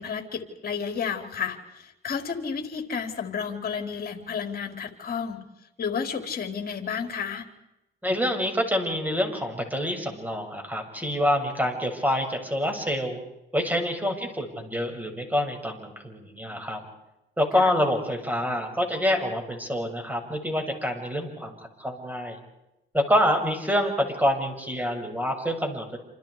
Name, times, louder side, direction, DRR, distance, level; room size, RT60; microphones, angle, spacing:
voice 1, 0.0-5.4 5.8-7.5 17.5-17.7, left 6 dB, 50° left, 5 dB, 4.2 m, -31 dB
voice 2, 8.0-13.2 13.5-16.8 17.4-21.5 21.8-22.4 22.9-26.0, equal, 10° right, 4 dB, 7.4 m, -26 dB
29.0 x 28.5 x 5.1 m, 0.93 s
cardioid pair, 90°, 20 cm